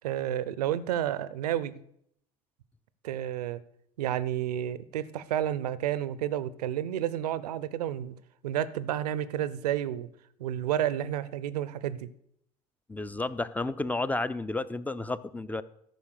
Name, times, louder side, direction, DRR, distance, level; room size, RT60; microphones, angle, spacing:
voice 1, 0.0-1.8 3.0-3.6 4.0-8.1 8.4-10.1 10.4-12.1, right 11 dB, 75° right, 17 dB, 0.7 m, -30 dB
voice 2, 12.9-15.6, left 2 dB, 10° left, 16 dB, 0.5 m, -31 dB
13.0 x 5.5 x 6.5 m, 0.73 s
hypercardioid pair, 70°, 20 cm